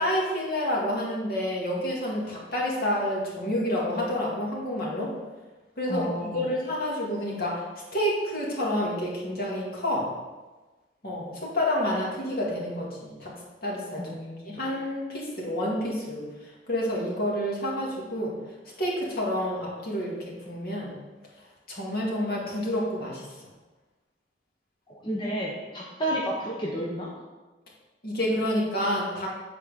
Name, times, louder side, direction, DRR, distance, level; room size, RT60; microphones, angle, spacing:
voice 1, 0.0-5.1 5.8-7.7 7.9-10.1 11.0-13.3 13.6-14.1 14.5-16.3 16.7-18.3 18.8-20.9 21.7-23.3 28.0-29.3, left 1 dB, 55° left, -4 dB, 2.1 m, -29 dB
voice 2, 5.9-6.4 14.0-14.6 24.9-27.1, equal, 25° left, -4 dB, 0.9 m, -31 dB
8.4 x 4.4 x 5.0 m, 1.2 s
head